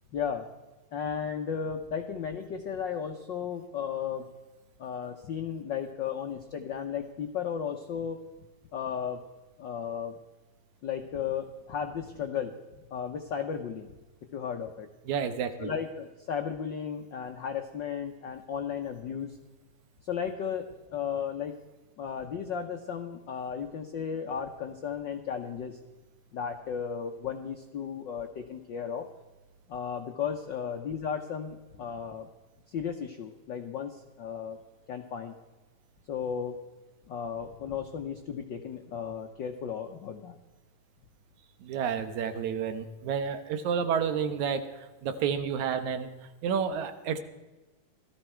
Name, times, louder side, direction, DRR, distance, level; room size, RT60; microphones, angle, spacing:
voice 1, 0.1-0.5 0.9-4.3 4.8-8.2 8.7-9.2 9.6-10.2 10.8-12.5 12.9-13.9 14.3-14.9 15.6-19.4 20.0-21.6 22.0-25.8 26.3-29.1 29.7-32.3 32.7-34.6 34.9-35.3 36.1-36.6 37.1-40.4, left 7 dB, 80° left, 5 dB, 1.0 m, -34 dB
voice 2, 15.1-15.7 41.6-46.1 46.4-47.2, right 7 dB, 75° right, 9 dB, 2.4 m, -30 dB
17.5 x 14.0 x 4.5 m, 1.2 s
omnidirectional pair, 3.4 m